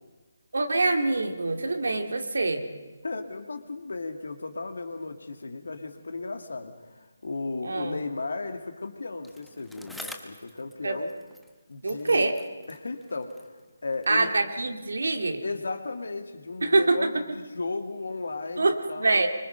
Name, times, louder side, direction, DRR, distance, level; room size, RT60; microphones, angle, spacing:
voice 1, 0.5-2.6 7.6-8.0 10.8-11.0 11.8-12.4 14.1-15.4 16.6-17.2 18.6-19.3, right 2 dB, 65° right, 5 dB, 2.4 m, -25 dB
voice 2, 3.0-11.1 11.7-12.3 12.7-13.5 13.8-14.3 15.4-19.2, left 3 dB, 65° left, 6 dB, 2.4 m, -35 dB
Bicycle, 9.2-11.6 11.9-14.2 15.0-15.1, left 1 dB, ahead, 1.0 m, -47 dB
25.0 x 25.0 x 5.4 m, 1.2 s
figure-of-eight pair, 150°, 0 cm